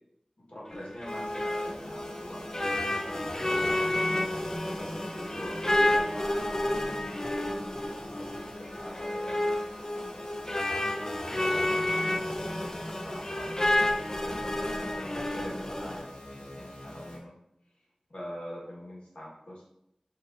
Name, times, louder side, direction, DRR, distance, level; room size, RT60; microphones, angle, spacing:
voice 1, 0.5-4.0 4.8-9.7 9.9-11.1 12.4-17.3 18.1-19.6, equal, 80° left, -5 dB, 1.4 m, -44 dB
sound 1, 0.7-16.0, left 1 dB, 30° left, 0.4 m, -30 dB
sound 2, 1.1-17.2, left 1 dB, 55° left, 0.7 m, -45 dB
5.8 x 2.7 x 2.6 m, 0.80 s
wide cardioid pair, 50°, 2 cm